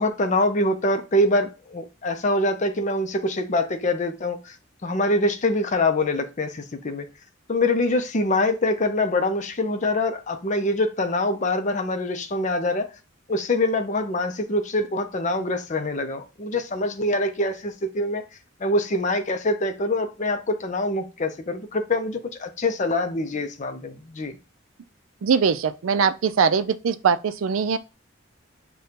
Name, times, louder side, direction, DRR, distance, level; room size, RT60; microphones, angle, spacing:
voice 1, 0.0-4.6 4.8-7.1 7.5-12.9 13.3-18.2 18.6-24.4, left 2 dB, 35° left, 0.5 m, -24 dB
voice 2, 25.2-27.8, right 6 dB, 80° right, 0.4 m, -21 dB
6.6 x 2.2 x 2.8 m
head